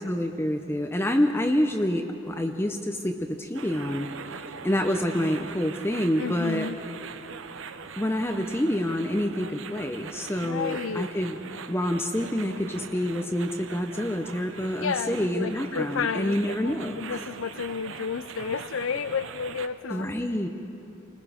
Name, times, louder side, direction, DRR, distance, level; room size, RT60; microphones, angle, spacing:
voice 1, 0.0-4.1 4.3-6.7 8.0-11.4 11.7-17.2 19.9-20.5, left 1 dB, 10° left, 4 dB, 0.6 m, -27 dB
sound 1, 3.5-19.7, right 5 dB, 85° right, 0.8 m, -41 dB
voice 2, 6.2-6.8 10.4-11.1 14.8-20.1, left 6 dB, 90° left, 12 dB, 0.5 m, -31 dB
28.5 x 19.5 x 5.0 m, 2.9 s
head